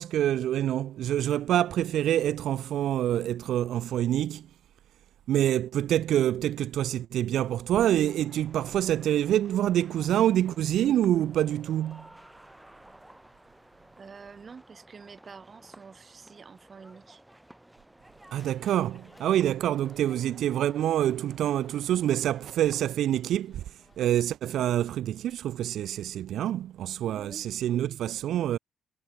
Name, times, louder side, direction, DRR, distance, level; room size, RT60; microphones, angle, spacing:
voice 1, 0.0-4.4 5.3-12.0 18.3-23.6 24.0-28.6, right 11 dB, 75° right, 0.6 m, -26 dB
sound 1, 8.0-22.8, right 1 dB, 5° right, 6.0 m, -54 dB
voice 2, 14.0-17.2 27.1-27.5 27.8-28.0, right 5 dB, 35° right, 4.7 m, -48 dB
sound 2, 18.4-24.2, left 2 dB, 15° left, 4.7 m, -59 dB
cardioid pair, 130°, 0 cm